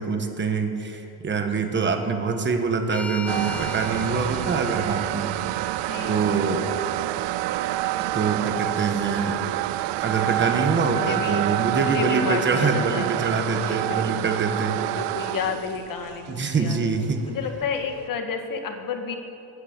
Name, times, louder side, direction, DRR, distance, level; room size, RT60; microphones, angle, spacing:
voice 1, 0.0-5.3 6.1-6.6 8.1-9.4 10.0-14.8 16.3-17.3, right 4 dB, 25° right, 6 dB, 1.2 m, -25 dB
sound 1, 2.9-7.1, left 2 dB, 5° left, 0.5 m, -40 dB
sound 2, 3.3-18.0, right 15 dB, 80° right, 0.5 m, -28 dB
voice 2, 10.8-11.5 11.8-13.1 13.6-14.4 14.9-16.8 17.3-19.2, left 6 dB, 50° left, 5 dB, 1.7 m, -31 dB
13.5 x 9.8 x 9.1 m, 2.8 s
cardioid pair, 170°, 42 cm